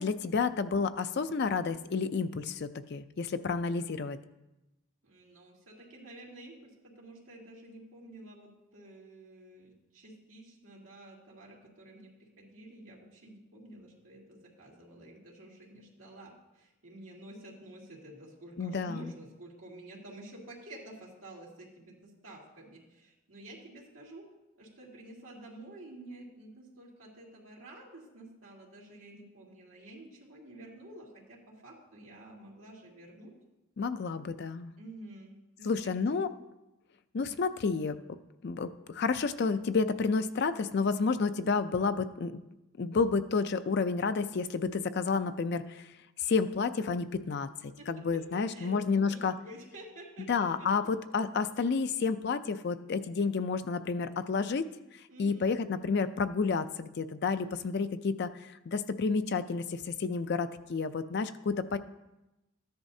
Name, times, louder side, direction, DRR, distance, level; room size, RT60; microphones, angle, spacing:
voice 1, 0.0-4.2 18.6-19.1 33.8-34.7 35.6-36.3 37.1-38.0 38.4-42.4 42.8-45.9 46.2-49.3 50.3-54.7 55.2-61.8, left 4 dB, 50° left, 11 dB, 0.4 m, -30 dB
voice 2, 5.0-33.3 34.8-36.3 47.8-48.2 48.5-50.7 55.1-55.5, right 1 dB, 65° right, -5 dB, 2.6 m, -50 dB
13.5 x 10.5 x 2.7 m, 0.97 s
head